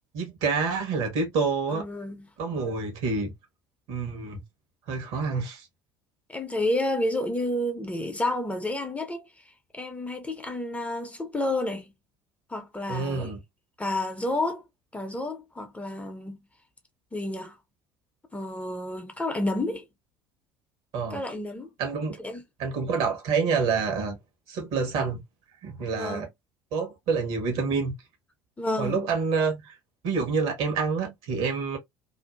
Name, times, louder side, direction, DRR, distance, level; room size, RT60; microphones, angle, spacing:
voice 1, 0.1-1.8 2.4-3.3 3.9-4.4 4.9-5.7 12.9-13.4 20.9-21.2 21.8-22.2 22.6-24.2 24.5-25.2 25.6-26.3 26.7-27.9 28.8-29.8 30.0-31.8, right 5 dB, 55° right, 1.2 m, -27 dB
voice 2, 1.7-2.3 6.3-9.3 9.7-11.9 12.5-13.3 13.8-14.6 14.9-16.4 17.1-17.6 18.3-19.9 21.1-21.7 22.2-22.4 26.0-26.3 28.6-29.0, left 1 dB, 10° left, 0.7 m, -30 dB
2.6 x 2.5 x 2.3 m
figure-of-eight pair, 65°, 12 cm